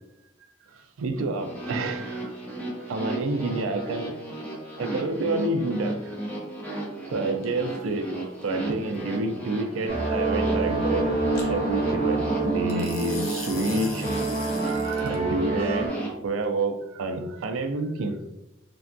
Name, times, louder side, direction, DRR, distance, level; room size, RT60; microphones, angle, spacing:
voice 1, 0.7-2.4 2.9-4.1 4.8-6.2 7.0-8.1 8.4-11.1 11.5-14.1 14.6-18.2, right 2 dB, 85° right, 0.3 m, -29 dB
sound 1, 1.3-16.1, right 1 dB, 10° left, 0.5 m, -35 dB
sound 2, 7.4-7.8 11.4-11.5 12.7-15.2, left 4 dB, 90° left, 0.6 m, -40 dB
sound 3, 9.9-15.9, right 2 dB, 30° right, 0.8 m, -27 dB
3.3 x 2.2 x 2.5 m
head